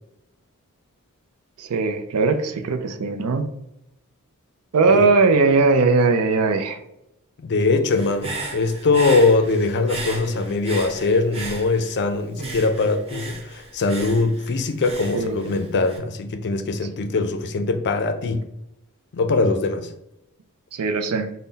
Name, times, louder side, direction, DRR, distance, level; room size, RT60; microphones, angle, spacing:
voice 1, 1.6-3.5 4.7-6.8 15.1-15.5 20.7-21.3, right 4 dB, 85° right, 0.5 m, -19 dB
voice 2, 7.4-18.4 19.1-19.9, left 3 dB, 50° left, 0.4 m, -21 dB
Human voice / Breathing, 7.9-12.0 12.4-16.0, right 2 dB, 30° right, 0.7 m, -35 dB
3.8 x 2.1 x 3.9 m
head